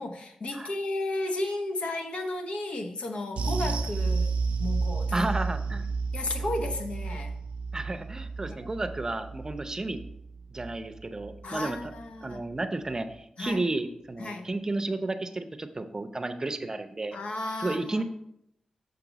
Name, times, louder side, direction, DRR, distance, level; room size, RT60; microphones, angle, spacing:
voice 1, 0.0-5.3 6.1-7.4 8.5-8.8 11.4-12.4 13.4-13.7 14.2-14.5 17.1-18.0, left 2 dB, 70° left, 5 dB, 0.9 m, -34 dB
sound 1, 3.4-12.0 12.3-12.5 12.9-13.0, right 4 dB, 90° right, 0.5 m, -32 dB
voice 2, 5.1-5.9 7.7-10.0 10.5-11.9 12.2-17.2 17.6-18.0, right 2 dB, 30° right, 9 dB, 0.6 m, -32 dB
6.6 x 5.9 x 4.0 m, 0.79 s
cardioid pair, 70°, 2 cm